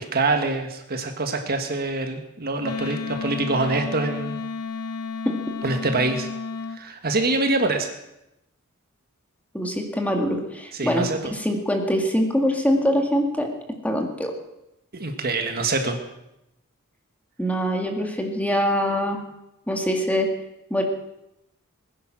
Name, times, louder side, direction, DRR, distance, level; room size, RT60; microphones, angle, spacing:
voice 1, 0.0-4.4 5.6-6.3 6.7-8.0 10.8-11.3 14.9-16.0, right 3 dB, 45° right, 5 dB, 1.6 m, -25 dB
Wind instrument woodwind instrument, 2.6-6.8, left 4 dB, 85° left, 1.2 m, -32 dB
voice 2, 9.5-13.5 13.8-14.3 17.4-19.2 19.7-20.3 20.7-20.8, equal, 5° left, 3 dB, 2.0 m, -23 dB
21.0 x 10.0 x 6.2 m, 0.88 s
head